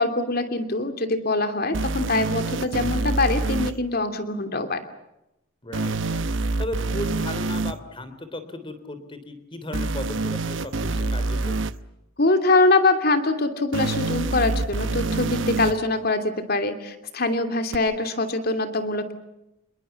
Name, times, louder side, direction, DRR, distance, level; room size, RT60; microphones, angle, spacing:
voice 1, 0.0-4.8 12.2-19.1, left 2 dB, 50° left, 8 dB, 3.0 m, -23 dB
sound 1, 1.7-3.7 5.7-7.7 9.7-11.7 13.7-15.7 17.7-17.8, right 3 dB, 65° right, 0.9 m, -26 dB
voice 2, 5.6-6.2 6.6-11.6, left 1 dB, 25° left, 10 dB, 3.6 m, -35 dB
27.5 x 22.0 x 7.2 m, 0.88 s
head